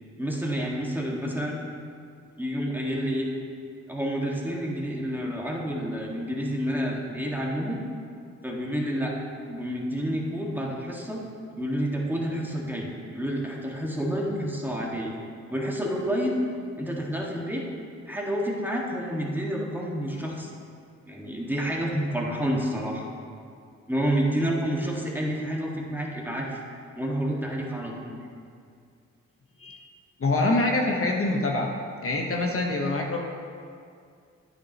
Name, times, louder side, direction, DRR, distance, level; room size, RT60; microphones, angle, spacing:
voice 1, 0.2-1.6 2.4-3.3 3.9-7.8 8.4-9.1 9.5-11.2 11.6-15.1 15.5-16.3 16.8-17.6 18.1-20.5 21.1-23.1 23.9-26.6 27.0-28.2, equal, 5° right, -3 dB, 1.8 m, -29 dB
voice 2, 30.2-31.7 32.0-33.2, left 2 dB, 50° left, 0 dB, 1.1 m, -25 dB
9.9 x 9.6 x 3.0 m, 2.3 s
cardioid pair, 55°, 29 cm